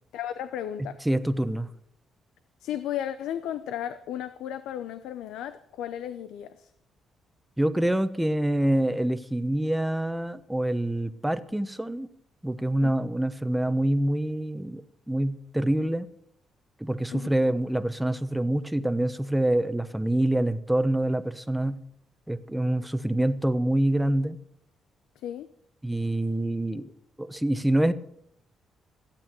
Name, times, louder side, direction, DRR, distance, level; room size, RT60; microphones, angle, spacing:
voice 1, 0.1-1.0 2.6-6.7 12.8-12.9 17.1-17.3 25.2-25.5, left 10 dB, 90° left, 0.7 m, -34 dB
voice 2, 0.8-1.7 7.6-12.1 12.4-16.1 16.8-21.8 22.3-24.4 25.8-26.9 27.2-27.9, right 1 dB, 5° right, 1.0 m, -26 dB
15.5 x 8.6 x 7.6 m
cardioid pair, 90°, 0 cm